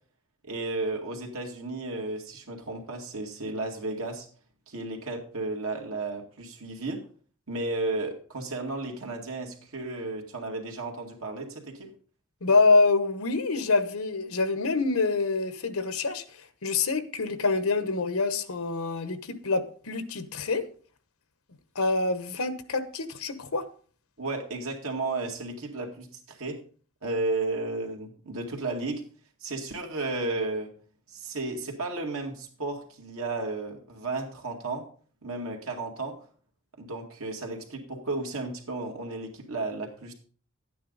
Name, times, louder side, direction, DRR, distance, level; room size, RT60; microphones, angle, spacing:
voice 1, 0.4-4.3 4.7-7.0 7.5-11.9 24.2-26.6 27.0-29.0 29.4-30.7 31.1-34.8 35.2-36.2 36.8-40.1, right 2 dB, 80° right, 2.3 m, -33 dB
voice 2, 12.4-20.7 21.7-23.6, left 3 dB, 80° left, 1.0 m, -26 dB
11.0 x 9.3 x 4.0 m
head